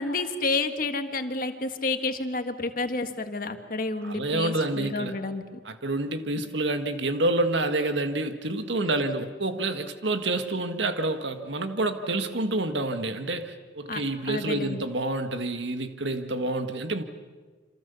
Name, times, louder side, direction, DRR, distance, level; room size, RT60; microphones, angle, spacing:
voice 1, 0.0-5.4 8.7-9.0 13.9-14.8, left 3 dB, 50° left, 7 dB, 1.7 m, -30 dB
voice 2, 4.0-5.1 5.6-17.0, right 2 dB, 85° right, 8 dB, 1.8 m, -28 dB
28.0 x 26.0 x 7.0 m, 1.4 s
head